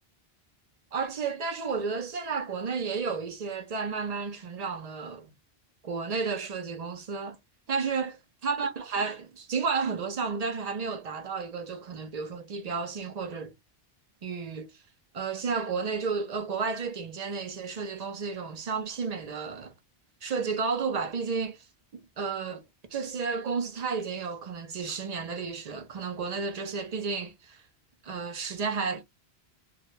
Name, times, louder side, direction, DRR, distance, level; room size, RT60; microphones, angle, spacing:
voice 1, 0.9-5.3 5.8-7.4 7.7-8.1 8.4-13.5 14.2-14.7 15.1-19.7 20.2-21.6 21.9-22.6 22.9-27.6 28.0-29.0, right 5 dB, 50° right, 0.5 m, -32 dB
2.1 x 2.1 x 2.9 m
omnidirectional pair, 1.1 m